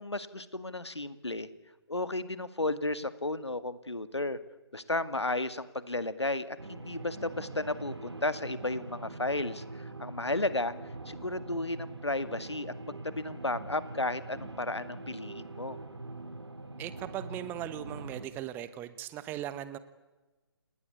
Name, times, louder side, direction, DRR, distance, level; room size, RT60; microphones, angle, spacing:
voice 1, 0.0-1.5 1.9-4.4 4.7-10.7 11.1-12.7 13.0-15.8, left 2 dB, 85° left, 14 dB, 2.1 m, -33 dB
sound 1, 6.6-18.3, right 2 dB, 75° right, 3.5 m, -43 dB
voice 2, 16.8-19.8, right 12 dB, 15° right, 14 dB, 1.1 m, -38 dB
29.5 x 19.5 x 8.4 m, 1.1 s
figure-of-eight pair, 140°, 14 cm